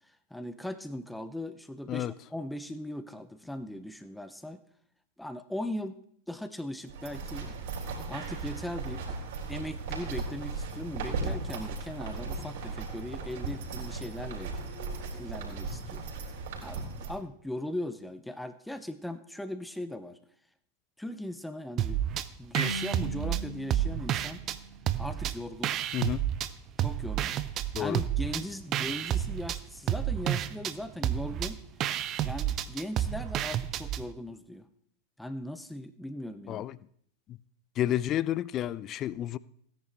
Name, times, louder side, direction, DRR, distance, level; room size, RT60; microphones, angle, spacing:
voice 1, 0.3-4.6 5.2-6.0 6.3-7.5 8.1-9.2 9.5-14.6 15.2-16.0 16.6-20.2 21.0-22.0 22.4-24.4 25.0-25.7 26.8-27.4 27.8-31.6 32.2-34.7 35.2-36.6, left 1 dB, 5° left, 0.7 m, -39 dB
sound 1, 6.9-17.1, right 4 dB, 55° right, 4.0 m, -37 dB
sound 2, 21.8-22.3 22.5-24.6 24.9-26.5 26.8-34.0, right 11 dB, 35° right, 0.6 m, -30 dB
Marimba xylophone, 22.6-25.2, left 1 dB, 75° left, 1.5 m, -40 dB
voice 2, 25.9-26.2 27.7-28.0 36.5-36.8 37.3-37.4 37.8-39.4, left 12 dB, 30° left, 0.4 m, -30 dB
16.5 x 10.0 x 3.5 m
figure-of-eight pair, 90°, 0 cm